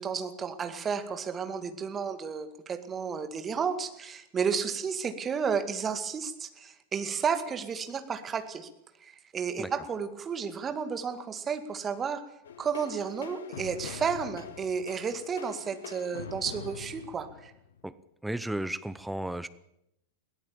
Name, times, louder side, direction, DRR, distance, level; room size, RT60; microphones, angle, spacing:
voice 1, 0.0-8.7 9.0-12.2 12.6-17.5, right 6 dB, 20° right, 9 dB, 2.1 m, -32 dB
sound 1, 12.4-17.9, left 6 dB, 65° left, 1.7 m, -43 dB
voice 2, 18.2-19.5, right 1 dB, 5° right, 15 dB, 0.8 m, -33 dB
21.5 x 17.5 x 7.3 m, 0.80 s
figure-of-eight pair, 90°, 0 cm